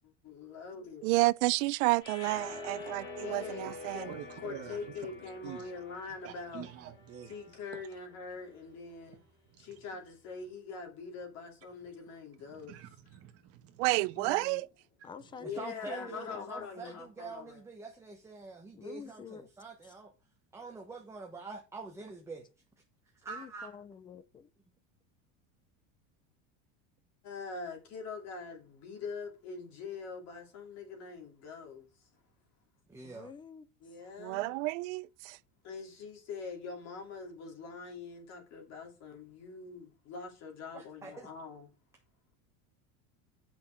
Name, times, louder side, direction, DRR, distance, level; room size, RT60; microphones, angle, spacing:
voice 1, 0.0-1.0 3.2-4.1 4.4-6.7 7.3-9.2 9.6-12.8 15.3-17.6 27.2-31.9 33.8-34.6 35.6-41.7, left 4 dB, 45° left, 2.9 m, -43 dB
voice 2, 1.0-4.1 13.8-14.7 34.2-35.4, right 22 dB, 80° right, 0.6 m, -30 dB
sound 1, 2.0-8.3, left 3 dB, 30° left, 3.0 m, -47 dB
voice 3, 3.6-5.7 6.2-7.4 7.7-7.8 9.1-9.2 9.5-9.8 12.5-14.4 15.0-15.3, right 10 dB, 40° right, 1.3 m, -48 dB
voice 4, 14.2-14.7 15.0-17.0 18.7-19.5 19.8-19.9 23.3-24.5 33.0-33.7, left 6 dB, 15° left, 0.4 m, -48 dB
voice 5, 15.4-20.1 20.5-22.5 23.2-23.8 32.9-33.3 40.7-41.3, right 4 dB, 10° right, 1.1 m, -45 dB
8.7 x 6.0 x 4.6 m
cardioid pair, 160°, 36 cm